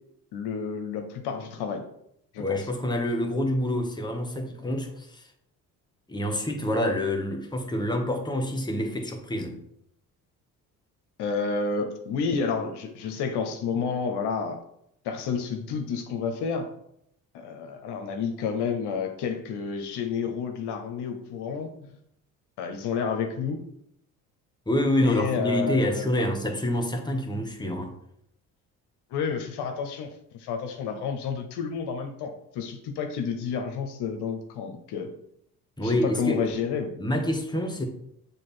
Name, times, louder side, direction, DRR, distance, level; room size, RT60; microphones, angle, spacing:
voice 1, 0.3-1.9 2.3-2.6 11.2-14.6 15.0-16.7 17.3-22.0 22.6-23.6 25.0-26.3 29.1-35.1 35.8-36.9, left 5 dB, 70° left, 5 dB, 0.9 m, -30 dB
voice 2, 2.4-5.3 6.1-9.6 24.7-27.9 35.8-36.4 37.0-37.9, left 1 dB, 10° left, 3 dB, 1.3 m, -27 dB
6.5 x 3.4 x 4.4 m, 0.74 s
hypercardioid pair, 55°, 42 cm